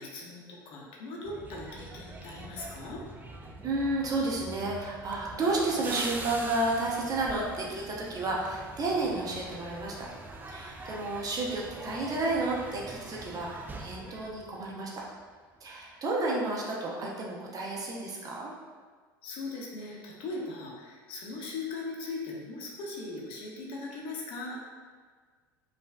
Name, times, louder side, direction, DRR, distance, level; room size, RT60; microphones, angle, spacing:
voice 1, 0.0-3.0 19.2-24.7, left 3 dB, 50° left, -2 dB, 0.8 m, -39 dB
sound 1, 1.2-15.3 15.5-15.8, right 2 dB, 15° right, 0.4 m, -44 dB
voice 2, 3.6-10.1 10.5-15.0 15.6-18.5, right 2 dB, 30° right, -3 dB, 0.8 m, -31 dB
5.2 x 2.5 x 2.3 m, 1.6 s
hypercardioid pair, 75°, 12 cm